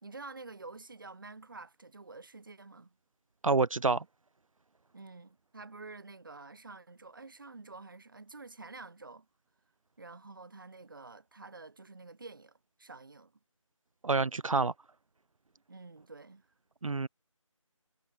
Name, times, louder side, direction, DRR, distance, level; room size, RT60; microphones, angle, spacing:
voice 1, 0.0-2.9 4.9-9.3 10.0-13.3 15.7-16.4, right 3 dB, 40° right, 1.1 m, -49 dB
voice 2, 3.4-4.0 14.0-14.7 16.8-17.1, right 4 dB, 75° right, 0.5 m, -27 dB
figure-of-eight pair, 165°, 17 cm